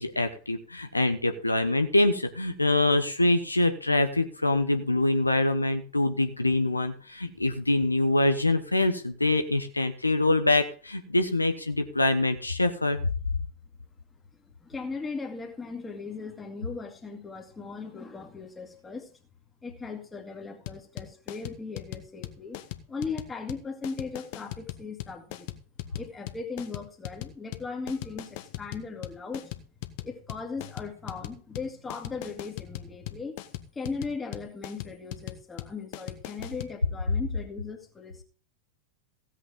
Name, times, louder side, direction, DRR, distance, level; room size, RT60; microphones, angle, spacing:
voice 1, 0.0-13.0, left 2 dB, 85° left, 8 dB, 0.9 m, -25 dB
voice 2, 14.6-19.1 19.6-22.6 22.9-25.5 25.9-29.5 30.0-33.3 33.7-38.2, left 4 dB, 15° left, 4 dB, 2.2 m, -38 dB
sound 1, 20.7-36.7, left 15 dB, 50° left, 1.0 m, -39 dB
16.0 x 8.4 x 3.7 m, 0.39 s
figure-of-eight pair, 90°, 0 cm